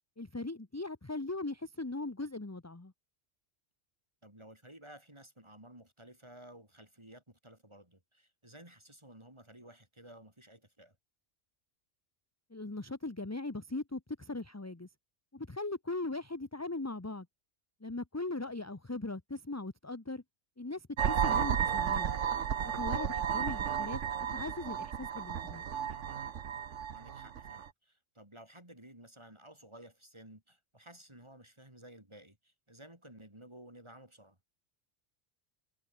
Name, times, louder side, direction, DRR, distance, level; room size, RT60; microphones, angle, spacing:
voice 1, 0.2-2.9 12.5-14.9 15.3-17.3 17.8-20.2 20.6-22.1 22.6-24.0 24.3-25.6, left 2 dB, 15° left, 1.0 m, -39 dB
voice 2, 4.2-11.0 18.4-18.5 22.9-23.3 26.9-34.4, right 1 dB, 25° right, 4.9 m, -55 dB
sound 1, 21.0-27.7, right 8 dB, 80° right, 1.4 m, -33 dB
omnidirectional pair, 1.2 m